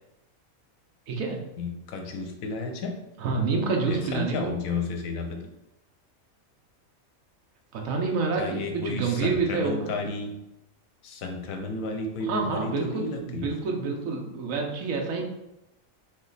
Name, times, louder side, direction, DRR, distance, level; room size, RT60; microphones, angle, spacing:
voice 1, 1.1-1.4 3.2-4.4 7.7-9.9 12.2-15.2, right 4 dB, 70° right, 1 dB, 1.2 m, -28 dB
voice 2, 1.6-2.9 3.9-5.4 8.4-10.3 11.0-13.5, left 3 dB, 75° left, 4 dB, 1.1 m, -32 dB
4.0 x 3.1 x 4.0 m, 0.91 s
omnidirectional pair, 1.5 m